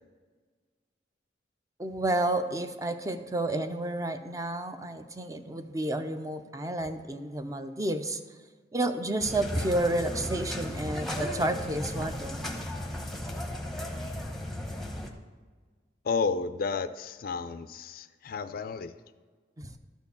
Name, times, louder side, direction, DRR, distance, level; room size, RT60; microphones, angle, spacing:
voice 1, 1.8-8.2 8.7-12.4 19.6-19.7, right 1 dB, 20° right, 8 dB, 0.5 m, -30 dB
sound 1, 9.2-15.1, left 1 dB, ahead, 0.8 m, -35 dB
voice 2, 16.0-18.9, left 5 dB, 55° left, 12 dB, 0.4 m, -32 dB
12.0 x 4.5 x 7.0 m, 1.5 s
head